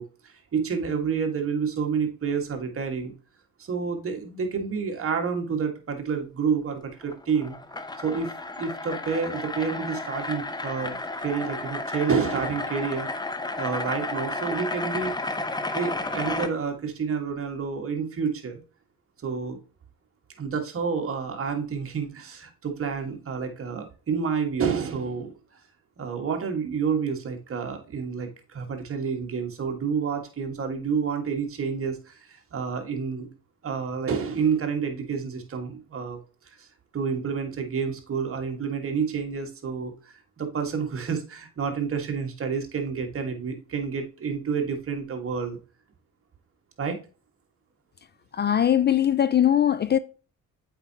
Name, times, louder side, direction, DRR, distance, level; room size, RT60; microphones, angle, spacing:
voice 1, 0.0-3.1 3.6-7.5 8.0-8.3 8.6-11.0 11.2-13.1 13.5-15.1 15.7-18.6 19.2-19.6 20.4-25.3 26.0-33.3 33.6-36.2 36.6-36.7 36.9-45.6 46.8-47.0, right 6 dB, 45° right, 1.6 m, -29 dB
sound 1, 7.0-16.5, left 2 dB, 15° left, 0.7 m, -32 dB
voice 2, 48.3-50.0, left 10 dB, 35° left, 0.4 m, -21 dB
7.8 x 4.6 x 2.8 m
cardioid pair, 90°, 30 cm